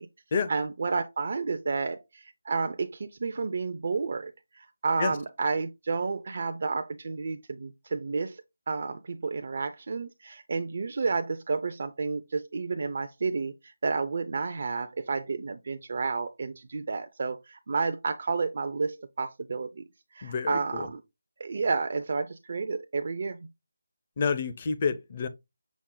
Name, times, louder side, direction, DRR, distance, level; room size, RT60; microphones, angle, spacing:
voice 1, 0.5-19.8 20.1-21.0 21.4-23.4, right 4 dB, 50° right, 0.4 m, -31 dB
voice 2, 20.2-20.9 24.2-25.3, left 5 dB, 35° left, 0.5 m, -29 dB
5.9 x 2.1 x 3.8 m
figure-of-eight pair, 160°, 0 cm